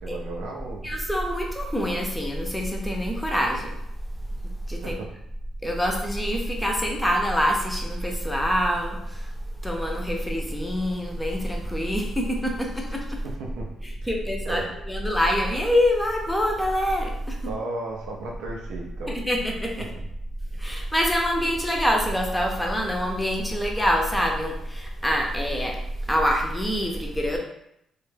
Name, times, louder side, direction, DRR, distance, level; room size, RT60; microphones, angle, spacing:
voice 1, 0.0-0.9 4.8-5.1 13.2-13.7 14.4-14.7 17.5-19.2 19.8-20.1, right 2 dB, 90° right, -1 dB, 0.5 m, -34 dB
voice 2, 0.8-3.7 4.7-5.0 5.6-9.0 9.6-13.2 14.1-17.5 19.1-19.9 20.6-25.8 26.1-27.4, equal, 5° left, 0 dB, 0.5 m, -25 dB
2.2 x 2.0 x 3.2 m, 0.77 s
cardioid pair, 90°, 0 cm